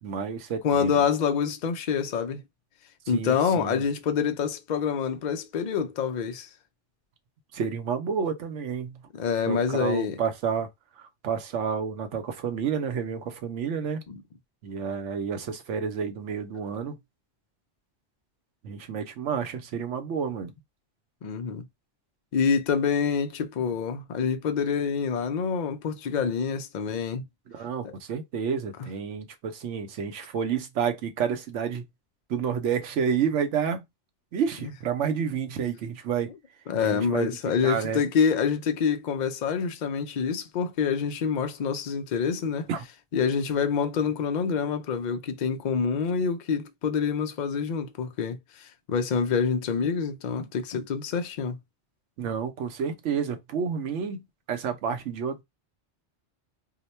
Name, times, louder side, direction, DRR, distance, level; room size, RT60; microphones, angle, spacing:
voice 1, 0.0-1.0 3.1-3.8 7.5-9.0 9.5-10.7 10.9-14.0 14.6-17.0 18.6-20.5 27.5-31.9 32.3-33.8 34.3-36.3 36.8-37.3 37.6-38.0 42.7-42.9 52.2-55.4, right 7 dB, 90° right, 1.0 m, -30 dB
voice 2, 0.6-2.4 3.1-6.5 9.2-10.1 14.1-14.2 21.2-21.6 22.3-27.2 27.8-27.9 36.7-42.7 43.1-51.6, left 6 dB, 55° left, 0.5 m, -26 dB
2.9 x 2.1 x 4.1 m
omnidirectional pair, 1.2 m